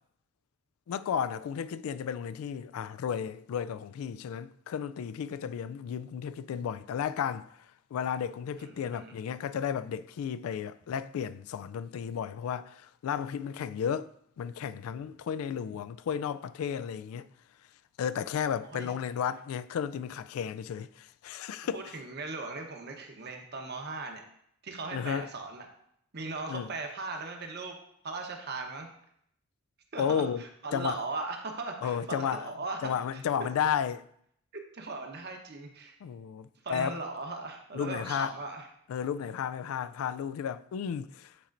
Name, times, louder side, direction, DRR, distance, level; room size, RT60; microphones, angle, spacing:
voice 1, 0.9-7.6 7.9-14.1 14.4-17.3 18.0-22.0 24.9-25.3 26.5-26.7 30.0-30.5 30.7-31.0 31.8-32.5 32.8-34.0 36.0-37.0 37.7-38.3 38.9-41.3, left 8 dB, 85° left, 0.3 m, -33 dB
voice 2, 8.5-9.2 18.7-18.9 21.7-24.2 24.6-25.7 26.1-27.8 28.0-28.9 29.9-33.2 34.5-36.0 36.6-38.7, right 3 dB, 50° right, 0.9 m, -38 dB
10.0 x 4.3 x 2.5 m
head